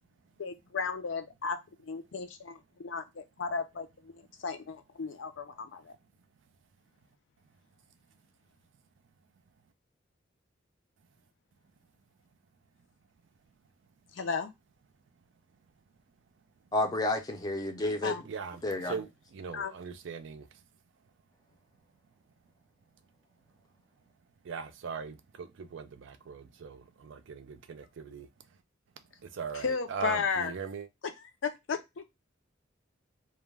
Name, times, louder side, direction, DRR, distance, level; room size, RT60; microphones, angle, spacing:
voice 1, 0.4-1.6 1.9-5.9 14.1-14.5 18.0-18.2 19.5-19.7 29.6-30.5 31.4-32.0, left 5 dB, 70° left, 0.5 m, -34 dB
voice 2, 16.7-18.2 18.6-18.9, left 2 dB, 20° left, 0.5 m, -30 dB
voice 3, 18.2-20.7 24.4-28.6 29.0-30.9, right 6 dB, 70° right, 0.4 m, -40 dB
2.2 x 2.2 x 3.2 m
head